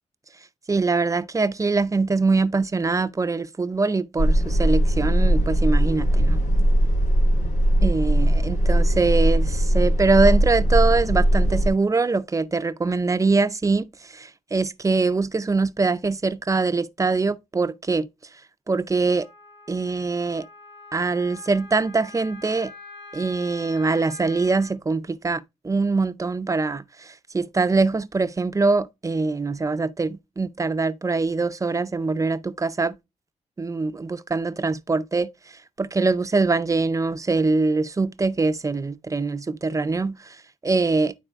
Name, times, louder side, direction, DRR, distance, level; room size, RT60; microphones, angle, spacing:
voice 1, 0.7-6.4 7.8-18.1 18.7-19.3 19.7-20.5 20.9-22.7 23.1-33.0 33.6-41.1, right 3 dB, 25° right, 0.5 m, -23 dB
sound 1, 4.2-11.7, equal, 85° left, 3.0 m, -19 dB
Wind instrument woodwind instrument, 19.0-24.7, left 3 dB, 55° left, 4.8 m, -44 dB
10.0 x 4.2 x 3.4 m
wide cardioid pair, 105°, 12 cm